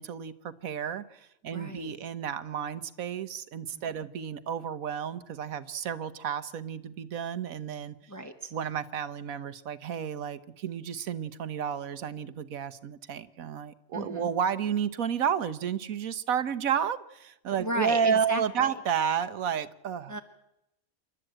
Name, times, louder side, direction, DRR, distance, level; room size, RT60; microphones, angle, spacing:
voice 1, 0.0-8.0 8.5-20.2, right 8 dB, 80° right, 14 dB, 1.4 m, -31 dB
voice 2, 1.5-1.9 3.7-3.8 8.1-8.5 13.9-14.3 17.6-18.7 20.1-20.2, equal, 15° left, 4 dB, 1.2 m, -34 dB
28.0 x 12.5 x 9.0 m, 0.87 s
omnidirectional pair, 1.4 m